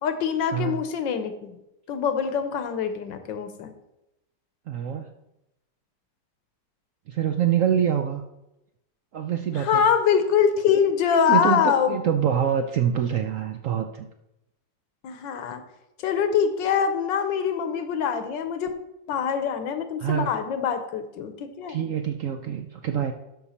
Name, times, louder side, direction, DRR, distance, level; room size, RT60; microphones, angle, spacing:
voice 1, 0.0-1.6 1.9-3.7 9.6-12.0 15.0-15.6 16.0-18.7 19.1-21.8, left 7 dB, 90° left, 9 dB, 1.6 m, -24 dB
voice 2, 4.7-5.1 7.1-8.2 9.1-9.8 11.3-14.1 20.0-20.3 21.7-23.1, right 8 dB, 70° right, 6 dB, 0.7 m, -25 dB
12.0 x 5.7 x 4.3 m, 0.89 s
omnidirectional pair, 1.9 m